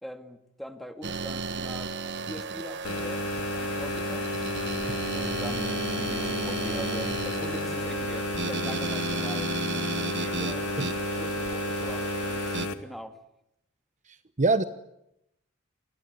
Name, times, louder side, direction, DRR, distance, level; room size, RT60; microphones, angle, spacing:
voice 1, 0.0-1.9 2.3-4.3 5.1-9.5 10.3-13.2, equal, ahead, 7 dB, 2.0 m, -42 dB
sound 1, 1.0-12.7, right 4 dB, 55° right, 1.3 m, -34 dB
sound 2, 2.8-12.7, left 2 dB, 85° left, 2.5 m, -32 dB
voice 2, 4.9-5.0 10.2-10.4 10.8-10.9 14.4-14.6, right 3 dB, 35° right, 11 dB, 1.0 m, -25 dB
27.5 x 21.0 x 9.6 m, 0.83 s
head